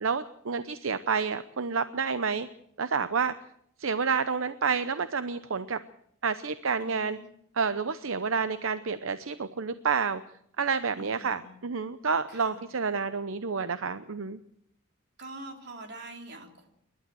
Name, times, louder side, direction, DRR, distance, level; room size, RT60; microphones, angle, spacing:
voice 1, 0.0-2.5 2.8-3.3 3.8-5.8 6.2-7.2 7.6-10.2 10.6-14.4, right 5 dB, 75° right, 12 dB, 0.8 m, -29 dB
voice 2, 6.8-7.2 11.0-11.5 12.3-12.6 15.2-16.7, right 2 dB, 55° right, 3 dB, 3.6 m, -45 dB
29.5 x 12.0 x 7.7 m, 0.72 s
head